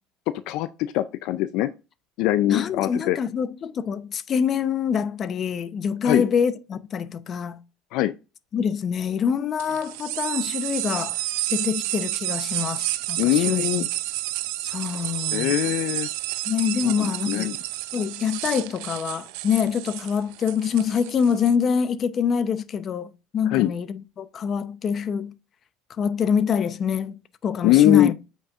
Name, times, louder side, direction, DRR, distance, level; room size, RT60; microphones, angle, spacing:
voice 1, 0.5-1.7 2.2-3.2 6.0-6.2 7.9-8.1 13.2-13.9 15.3-16.1 16.8-17.6 23.5-23.7 27.6-28.1, left 14 dB, 70° left, 0.4 m, -22 dB
voice 2, 2.5-7.6 8.5-11.2 11.5-13.9 14.6-15.6 16.5-17.5 17.9-25.3 26.0-27.2 27.4-28.1, left 7 dB, 35° left, 0.7 m, -25 dB
sound 1, 9.6-21.5, right 17 dB, 80° right, 0.5 m, -30 dB
8.6 x 5.4 x 2.4 m
cardioid pair, 125°, 0 cm